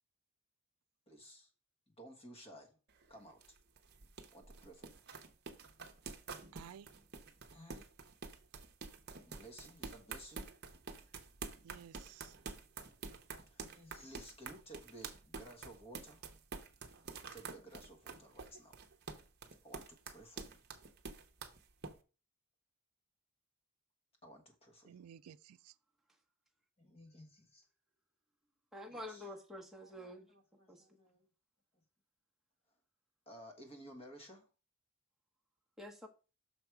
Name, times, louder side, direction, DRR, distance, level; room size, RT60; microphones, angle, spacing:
voice 1, 1.1-1.5 2.0-2.7 3.1-3.4 4.3-5.0 7.5-7.9 9.3-10.5 13.5-16.2 17.3-18.7 19.6-20.6 24.2-25.0 26.8-27.6 28.9-29.2 29.8-31.3 33.3-34.5, right 1 dB, 25° left, 1.4 m, -55 dB
sound 1, 2.9-21.9, right 4 dB, 45° right, 0.8 m, -48 dB
voice 2, 6.5-6.9 11.6-12.4 24.8-25.7, right 8 dB, 85° right, 0.4 m, -55 dB
voice 3, 28.7-30.3 30.7-30.9 35.8-36.1, left 1 dB, ahead, 1.1 m, -48 dB
6.3 x 5.0 x 4.6 m
head